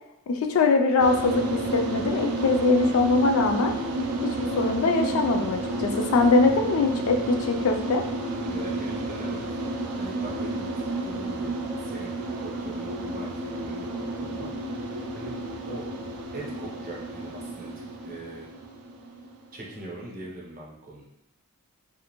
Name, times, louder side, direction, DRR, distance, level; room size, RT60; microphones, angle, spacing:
voice 1, 0.3-3.7 4.2-8.0, left 3 dB, 65° left, 4 dB, 0.3 m, -22 dB
sound 1, 1.0-19.7, right 2 dB, 80° right, 0.4 m, -31 dB
voice 2, 8.4-9.5 10.0-15.8 16.3-17.7 18.0-18.5 19.5-21.0, right 1 dB, 40° right, -3 dB, 0.6 m, -41 dB
2.5 x 2.4 x 2.9 m, 0.83 s
head